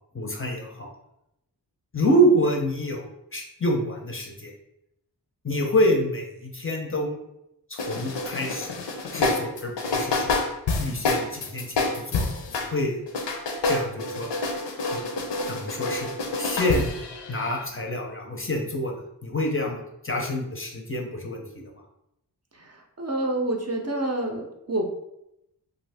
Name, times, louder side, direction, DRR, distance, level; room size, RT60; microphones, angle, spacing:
voice 1, 0.1-0.9 1.9-4.5 5.4-7.2 7.7-8.8 9.1-10.4 10.8-13.0 13.7-14.3 14.9-15.0 15.5-16.1 16.4-16.9 17.3-21.6, equal, 30° left, 1 dB, 0.5 m, -27 dB
sound 1, 7.8-12.7 13.1-17.6, left 3 dB, 85° left, 0.5 m, -28 dB
voice 2, 22.5-24.8, right 1 dB, 40° right, 1 dB, 0.5 m, -28 dB
2.6 x 2.6 x 3.3 m, 0.84 s
wide cardioid pair, 60°, 42 cm